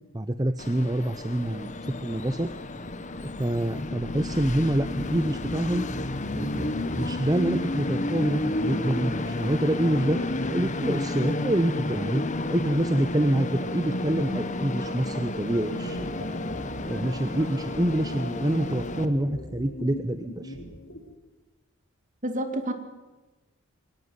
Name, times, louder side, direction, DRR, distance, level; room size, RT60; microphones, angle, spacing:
voice 1, 0.1-2.5 3.4-5.8 6.3-10.2 10.5-16.1 16.6-20.6, right 1 dB, 20° right, 11 dB, 0.7 m, -27 dB
Train, 0.6-19.1, left 2 dB, 35° left, 1.4 m, -31 dB
sound 1, 15.5-21.1, equal, 70° left, 4.0 m, -40 dB
voice 2, 22.2-22.7, right 1 dB, 40° right, 8 dB, 2.5 m, -30 dB
23.0 x 18.5 x 9.6 m, 1.2 s
head